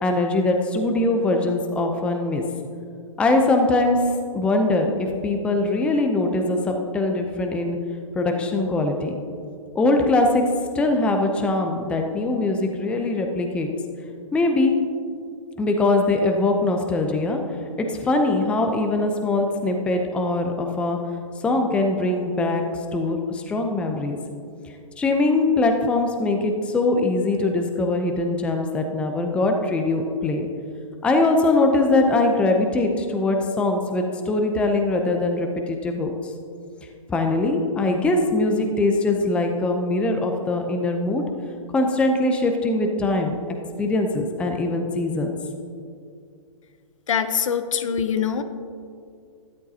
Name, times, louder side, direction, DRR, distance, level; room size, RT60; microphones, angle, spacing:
voice 1, 0.0-2.4 3.2-4.0 4.3-7.8 8.1-9.2 9.7-10.4 10.7-13.7 14.3-14.7 15.6-17.4 17.8-21.0 21.4-22.6 22.9-24.2 25.0-30.5 31.0-36.3 37.1-41.2 41.7-45.3, left 2 dB, 5° left, 3 dB, 0.5 m, -22 dB
voice 2, 47.1-48.4, left 7 dB, 65° left, 10 dB, 0.8 m, -23 dB
12.5 x 11.0 x 2.8 m, 2.3 s
hypercardioid pair, 140°, 17 cm